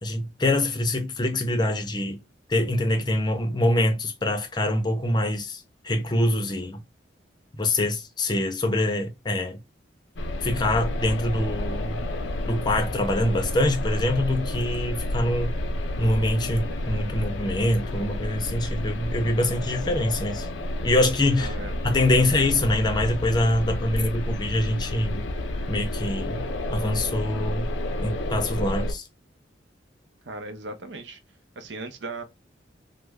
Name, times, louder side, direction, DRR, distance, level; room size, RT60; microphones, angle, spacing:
voice 1, 0.0-2.2 2.5-6.8 7.6-9.6 10.4-12.0 12.5-15.6 16.0-20.5 20.8-21.5 21.8-25.3 25.7-27.7 28.0-29.0, left 1 dB, 25° left, 0.5 m, -25 dB
sound 1, 10.2-28.9, left 1 dB, 85° left, 0.5 m, -30 dB
voice 2, 21.4-21.7 22.2-22.5 30.2-31.2 31.6-32.2, right 2 dB, 75° right, 0.6 m, -37 dB
3.1 x 2.1 x 3.4 m
head